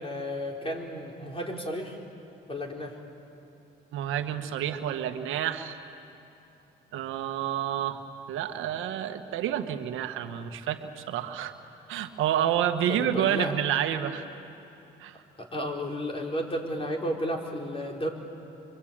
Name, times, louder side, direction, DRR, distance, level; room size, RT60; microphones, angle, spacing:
voice 1, 0.0-2.0 2.5-3.0 12.9-13.5 15.4-18.1, equal, 25° left, 0 dB, 4.4 m, -33 dB
voice 2, 3.9-5.8 6.9-11.5 11.9-14.2 15.0-15.1, right 10 dB, 90° right, 7 dB, 1.4 m, -29 dB
26.0 x 23.5 x 8.8 m, 3.0 s
cardioid pair, 90°, 20 cm